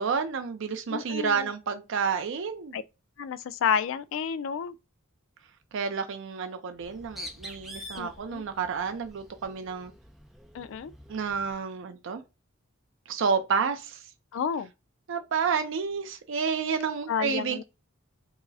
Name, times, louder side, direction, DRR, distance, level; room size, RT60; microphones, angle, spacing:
voice 1, 0.0-2.8 5.7-9.9 11.1-12.2 13.1-14.1 15.1-17.6, right 6 dB, 65° right, 0.5 m, -30 dB
voice 2, 0.9-1.5 2.7-2.8 3.2-4.8 7.9-8.4 10.5-10.9 14.3-14.7 17.1-17.6, left 7 dB, 65° left, 0.3 m, -30 dB
Bird, 6.8-11.6, equal, ahead, 0.5 m, -46 dB
4.5 x 2.0 x 2.7 m
head